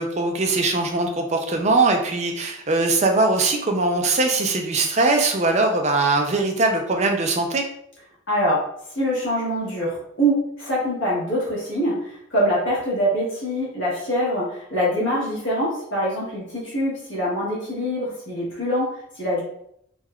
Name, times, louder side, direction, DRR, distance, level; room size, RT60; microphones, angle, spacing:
voice 1, 0.0-7.6, right 3 dB, 30° right, 3 dB, 0.3 m, -21 dB
voice 2, 8.3-8.6 8.9-19.4, equal, 55° left, -6 dB, 1.2 m, -24 dB
3.4 x 2.2 x 2.2 m, 0.73 s
head